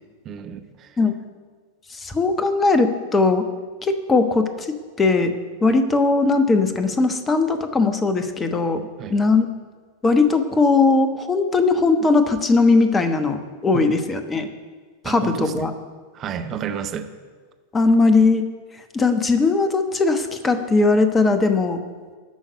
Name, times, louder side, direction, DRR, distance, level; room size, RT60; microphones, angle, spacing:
voice 1, 0.2-0.9 9.0-9.2 13.7-14.0 15.0-15.6 16.1-17.1, right 7 dB, 30° right, 7 dB, 0.8 m, -31 dB
voice 2, 1.9-3.5 3.8-5.3 5.6-9.5 10.0-14.5 15.0-15.7 17.7-18.4 18.9-21.8, left 3 dB, 15° left, 8 dB, 1.1 m, -19 dB
13.5 x 5.8 x 9.6 m, 1.5 s
figure-of-eight pair, 90°, 0 cm